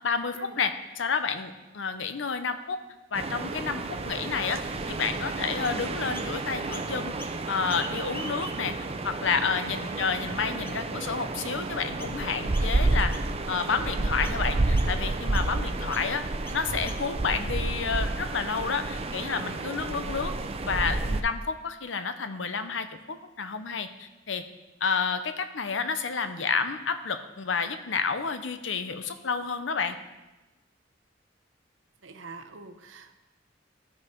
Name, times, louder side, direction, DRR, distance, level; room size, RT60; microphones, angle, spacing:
voice 1, 0.0-2.8 3.1-4.6 4.9-7.1 7.5-8.7 9.0-13.1 13.5-16.3 16.5-20.3 20.6-24.4 24.8-30.0, left 5 dB, 75° left, 10 dB, 0.7 m, -30 dB
sound 1, 3.1-21.2, right 2 dB, 30° right, 0.6 m, -30 dB
Chirp tweet, 5.6-6.3 6.7-7.4 7.6-8.8 9.4-9.5 10.2-10.3 10.6-10.9 11.4-11.6 12.0-12.2 12.5-12.9 13.1-13.8 14.2-14.4 14.7-14.9 15.3-15.5 15.9-16.1 16.4-17.2, left 1 dB, 10° left, 0.8 m, -44 dB
voice 2, 32.0-33.2, right 3 dB, 85° right, 8 dB, 0.9 m, -45 dB
13.0 x 6.3 x 4.6 m, 1.1 s
head